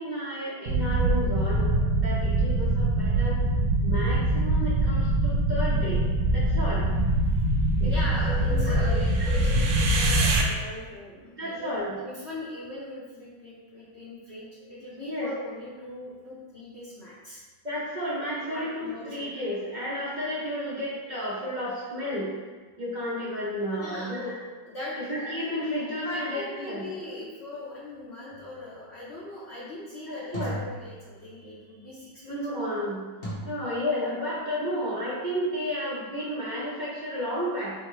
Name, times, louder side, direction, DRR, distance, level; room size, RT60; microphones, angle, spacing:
voice 1, 0.0-3.4 3.8-6.0 6.3-6.8 7.8-7.9 8.2-9.6 11.4-11.9 15.0-15.3 17.6-22.3 22.8-24.4 25.1-26.8 30.1-30.5 32.3-33.0 33.4-37.7, equal, 60° right, -9 dB, 0.4 m, -32 dB
sound 1, 0.7-10.4, right 1 dB, 75° right, 0.8 m, -23 dB
voice 2, 7.9-17.4 18.4-19.4 23.7-24.2 24.6-25.0 25.8-32.6, left 1 dB, 70° left, -9 dB, 0.6 m, -40 dB
sound 2, 28.3-28.7 30.3-31.6 33.2-33.3, equal, 40° left, 1.2 m, -37 dB
3.7 x 3.5 x 3.0 m, 1.4 s
omnidirectional pair, 2.1 m